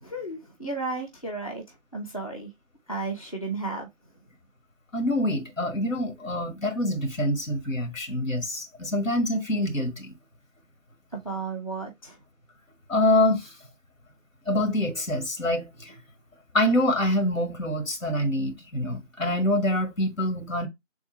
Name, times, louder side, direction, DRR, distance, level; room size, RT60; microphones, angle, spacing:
voice 1, 0.0-2.5 2.9-3.9 11.1-12.2, right 3 dB, 30° left, 0.6 m, -33 dB
voice 2, 4.9-10.1 12.9-13.5 14.5-15.9 16.5-20.7, left 1 dB, 90° left, 1.5 m, -25 dB
3.5 x 2.2 x 4.2 m
figure-of-eight pair, 165°, 38 cm